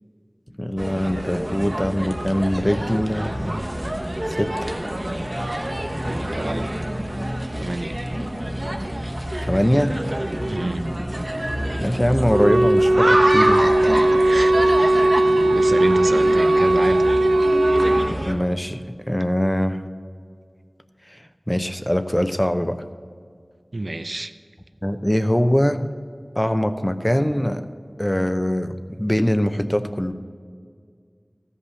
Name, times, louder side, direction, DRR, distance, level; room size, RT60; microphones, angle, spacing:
voice 1, 0.6-3.6 4.3-4.7 9.5-10.0 11.8-13.6 18.3-18.8 19.1-19.8 21.1-22.8 24.8-25.9 26.4-27.6 28.0-30.1, equal, 15° left, 9 dB, 0.6 m, -22 dB
sound 1, 0.8-18.3, right 1 dB, 40° right, 1.0 m, -27 dB
sound 2, 5.2-14.8, equal, 80° left, 1.6 m, -37 dB
voice 2, 6.2-6.7 7.6-7.9 10.5-10.8 14.1-15.2 15.5-17.2 23.7-24.3, right 2 dB, 70° right, 10 dB, 0.5 m, -29 dB
Wind instrument woodwind instrument, 12.3-18.1, right 1 dB, 85° right, 2.3 m, -18 dB
14.5 x 5.5 x 7.0 m, 2.1 s
wide cardioid pair, 40°, 0 cm